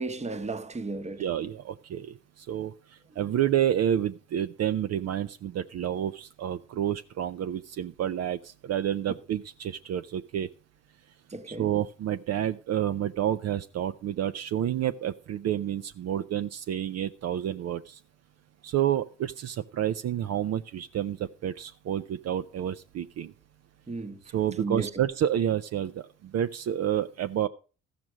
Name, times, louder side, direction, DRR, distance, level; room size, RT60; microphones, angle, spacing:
voice 1, 0.0-1.3 11.3-11.7 23.9-24.2 24.6-24.9, right 3 dB, 20° right, 1.0 m, -34 dB
voice 2, 1.2-10.5 11.5-18.0 18.6-23.3 24.3-27.5, right 10 dB, 60° right, 0.5 m, -29 dB
14.0 x 6.0 x 6.1 m
cardioid pair, 90°, 30 cm